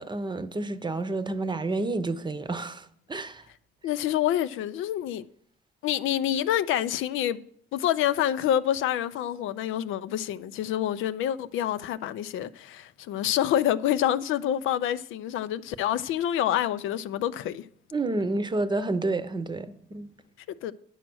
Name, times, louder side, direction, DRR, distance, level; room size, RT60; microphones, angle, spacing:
voice 1, 0.0-3.4 17.9-20.1, right 2 dB, 20° right, 0.8 m, -30 dB
voice 2, 3.8-5.2 5.8-7.4 7.7-17.7 20.6-20.7, left 11 dB, 85° left, 0.5 m, -27 dB
9.8 x 6.3 x 6.2 m
cardioid pair, 90°, 20 cm